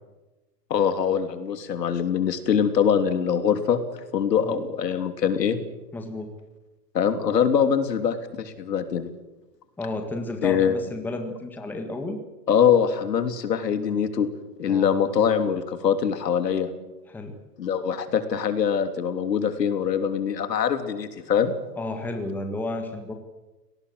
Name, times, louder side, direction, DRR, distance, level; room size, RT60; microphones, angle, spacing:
voice 1, 0.7-3.8 4.1-5.6 6.9-9.1 10.4-10.7 12.5-14.3 14.6-16.7 17.6-21.5, left 7 dB, 80° left, 8 dB, 3.4 m, -23 dB
voice 2, 5.9-6.3 9.8-12.2 14.7-14.9 17.1-17.4 21.8-23.1, left 2 dB, 5° left, 4 dB, 1.7 m, -32 dB
25.0 x 18.5 x 8.0 m, 1.1 s
hypercardioid pair, 160°, 48 cm